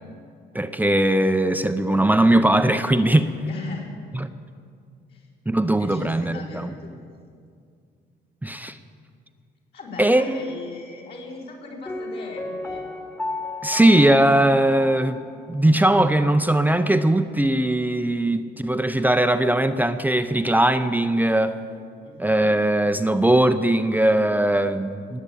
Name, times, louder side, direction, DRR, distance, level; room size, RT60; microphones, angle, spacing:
voice 1, 0.5-3.3 4.1-4.3 5.5-6.7 8.4-8.8 10.0-10.6 13.6-15.2 15.5-21.5 22.2-25.2, right 1 dB, 10° right, 9 dB, 0.6 m, -20 dB
voice 2, 3.5-3.9 5.1-5.3 5.7-6.9 9.7-12.8 22.0-22.5, left 3 dB, 65° left, -7 dB, 4.7 m, -39 dB
Piano, 11.9-15.6 15.9-16.0, left 2 dB, 15° left, 1.4 m, -34 dB
19.5 x 7.4 x 8.4 m, 2.2 s
cardioid pair, 90°, 20 cm